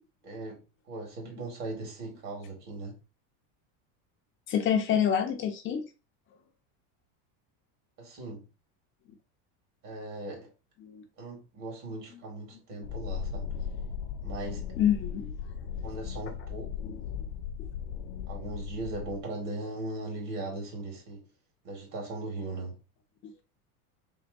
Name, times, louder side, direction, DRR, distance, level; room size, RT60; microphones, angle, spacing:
voice 1, 0.2-3.0 8.0-8.5 9.8-10.5 11.2-13.5 14.2-14.7 15.8-17.0 18.3-21.3 21.6-22.8, right 2 dB, 45° right, 2.1 m, -39 dB
voice 2, 4.5-5.8 10.8-11.0 14.8-15.3 16.8-17.0, left 9 dB, 30° left, 0.5 m, -27 dB
sound 1, 12.8-19.2, left 8 dB, 75° left, 0.6 m, -37 dB
3.5 x 3.1 x 3.9 m
cardioid pair, 155°, 44 cm